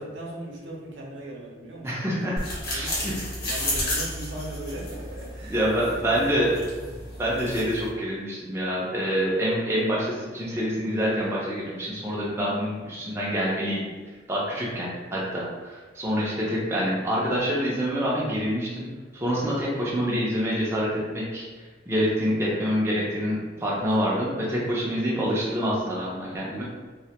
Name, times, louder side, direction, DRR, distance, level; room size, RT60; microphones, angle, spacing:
voice 1, 0.0-2.3 2.5-3.1 3.4-6.4 14.5-14.8 23.6-23.8, right 1 dB, 90° right, -3 dB, 0.6 m, -39 dB
voice 2, 1.8-2.3 2.7-3.2 5.5-6.5 7.2-13.8 14.3-18.9 19.1-21.5 21.9-26.6, equal, 15° right, -6 dB, 0.4 m, -26 dB
sound 1, 2.4-7.9, left 1 dB, 55° left, 0.9 m, -32 dB
2.2 x 2.1 x 2.8 m, 1.4 s
head